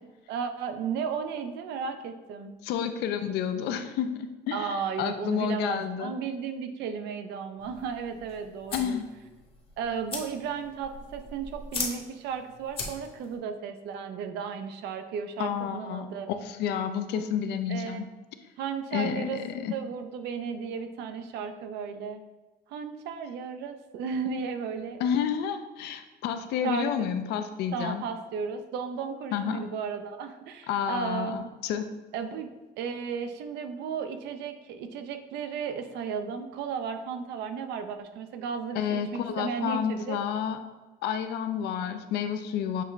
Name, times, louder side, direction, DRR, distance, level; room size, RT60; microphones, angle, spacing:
voice 1, 0.3-2.5 4.5-9.0 9.8-16.3 17.7-18.0 18.6-19.4 19.7-22.2 22.7-25.0 26.6-27.1 27.7-31.5 32.1-40.2, right 6 dB, 80° right, 8 dB, 0.5 m, -34 dB
voice 2, 2.6-6.1 8.7-9.1 15.4-18.0 18.9-19.7 25.0-28.0 29.3-29.7 30.7-31.9 38.7-40.6 41.0-42.8, left 8 dB, 80° left, 9 dB, 0.4 m, -30 dB
sound 1, 7.6-13.4, left 3 dB, 30° left, 0.8 m, -40 dB
6.6 x 2.4 x 3.1 m, 1.2 s
cardioid pair, 110°, 17 cm